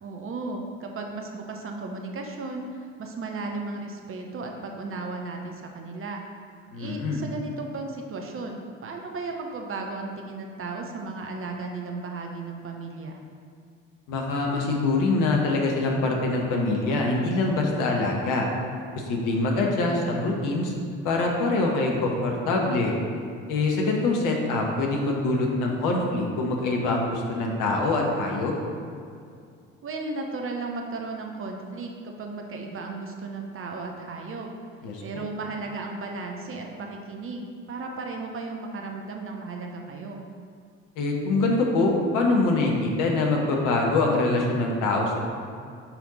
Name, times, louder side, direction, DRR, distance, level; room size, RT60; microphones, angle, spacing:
voice 1, 0.0-6.2 6.8-13.2 29.8-34.5 35.0-40.3, right 3 dB, 35° right, 2 dB, 0.9 m, -35 dB
voice 2, 6.7-7.2 14.1-18.4 18.9-20.7 21.0-22.9 23.5-28.5 34.8-35.2 41.0-45.3, left 2 dB, 55° left, 0 dB, 1.2 m, -24 dB
5.8 x 5.6 x 4.1 m, 2.3 s
figure-of-eight pair, 50°, 38 cm